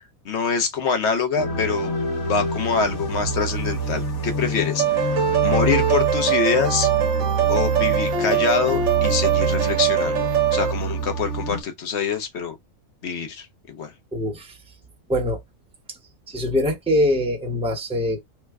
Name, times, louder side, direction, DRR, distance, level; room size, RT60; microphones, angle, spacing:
voice 1, 0.0-6.9 7.5-10.2 10.5-12.6 13.0-13.9, left 6 dB, 60° left, 1.0 m, -25 dB
sound 1, 1.4-11.6, right 3 dB, 85° left, 1.6 m, -26 dB
sound 2, 4.8-10.7, right 8 dB, 65° right, 1.0 m, -22 dB
voice 2, 14.1-14.6 15.1-15.4 16.3-18.2, left 1 dB, 5° right, 0.7 m, -23 dB
3.2 x 2.2 x 3.4 m
omnidirectional pair, 1.4 m